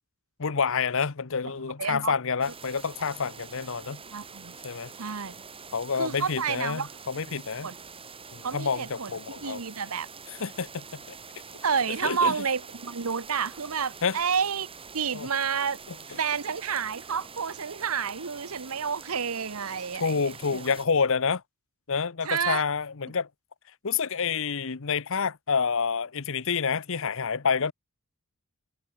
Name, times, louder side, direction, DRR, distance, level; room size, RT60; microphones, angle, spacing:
voice 1, 0.4-4.0 4.6-4.9 5.7-7.7 8.3-9.6 10.4-11.2 12.0-12.3 14.0-14.2 15.1-15.3 20.0-21.4 21.9-23.3 23.8-27.7, left 5 dB, 65° left, 0.9 m, -28 dB
voice 2, 1.4-2.1 4.1-4.6 5.0-5.4 6.0-6.9 7.6-7.7 8.4-9.1 9.4-10.1 11.6-14.7 14.9-15.8 16.1-20.7 22.2-22.6, right 6 dB, 75° right, 1.0 m, -30 dB
sound 1, 2.4-20.9, right 5 dB, 25° right, 4.3 m, -45 dB
head